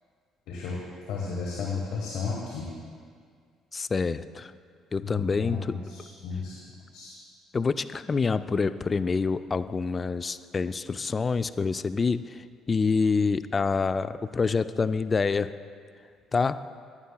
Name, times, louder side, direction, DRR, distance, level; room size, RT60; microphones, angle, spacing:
voice 1, 0.5-0.8 1.1-2.7 5.0-6.5 6.9-7.1, left 5 dB, 70° left, -3 dB, 1.4 m, -33 dB
voice 2, 3.7-4.5 4.9-5.8 7.5-15.5 16.3-16.6, left 4 dB, 35° left, 13 dB, 0.3 m, -27 dB
16.0 x 11.0 x 2.3 m, 2.1 s
hypercardioid pair, 50°, 0 cm